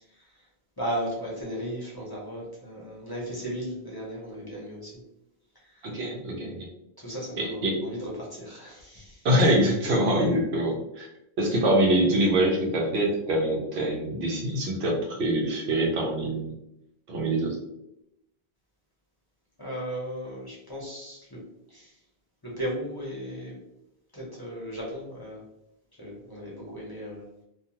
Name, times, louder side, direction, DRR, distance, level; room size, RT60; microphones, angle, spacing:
voice 1, 0.8-4.9 5.6-5.8 7.0-9.3 19.6-21.4 21.7-21.9 22.4-23.5 24.1-25.4 26.0-27.3, equal, 25° left, -5 dB, 0.7 m, -36 dB
voice 2, 5.8-6.7 7.4-7.8 9.2-11.1 11.4-16.5 17.1-17.6, right 1 dB, 80° right, -1 dB, 0.9 m, -24 dB
2.4 x 2.4 x 2.8 m, 0.83 s
omnidirectional pair, 1.1 m